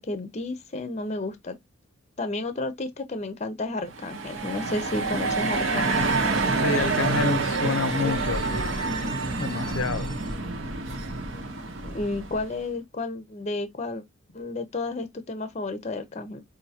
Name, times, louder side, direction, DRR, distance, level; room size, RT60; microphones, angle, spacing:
voice 1, 0.0-1.6 2.2-6.1 11.8-14.0 14.3-16.4, left 2 dB, 35° left, 0.5 m, -32 dB
sound 1, 3.9-12.6, right 3 dB, 85° right, 1.0 m, -27 dB
voice 2, 6.6-8.6 9.4-10.1, left 4 dB, 85° left, 0.6 m, -28 dB
5.1 x 2.6 x 2.8 m
head